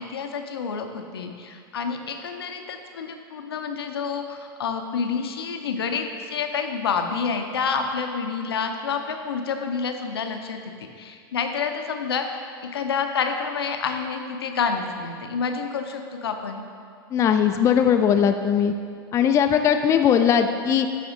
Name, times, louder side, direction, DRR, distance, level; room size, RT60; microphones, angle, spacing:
voice 1, 0.0-12.5 12.7-16.6, left 5 dB, 80° left, 5 dB, 0.6 m, -28 dB
voice 2, 17.1-18.7 19.1-20.9, left 8 dB, 25° left, 6 dB, 0.3 m, -19 dB
8.6 x 4.2 x 3.8 m, 2.2 s
hypercardioid pair, 95°, 13 cm